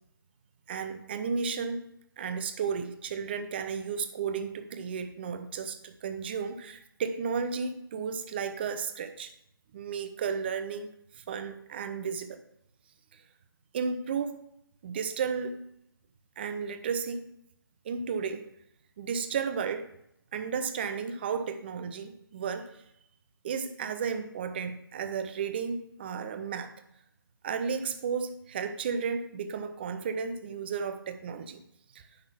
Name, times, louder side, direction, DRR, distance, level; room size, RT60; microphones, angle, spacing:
voice 1, 0.7-1.8 2.2-9.3 9.7-10.9 11.2-12.4 13.7-14.4 14.8-15.6 16.4-17.3 17.8-18.5 19.0-19.9 20.3-22.6 23.4-26.7 27.4-31.6 31.9-32.0, right 6 dB, 25° right, 9 dB, 0.7 m, -33 dB
10.5 x 3.9 x 7.2 m, 0.77 s
figure-of-eight pair, 145°, 12 cm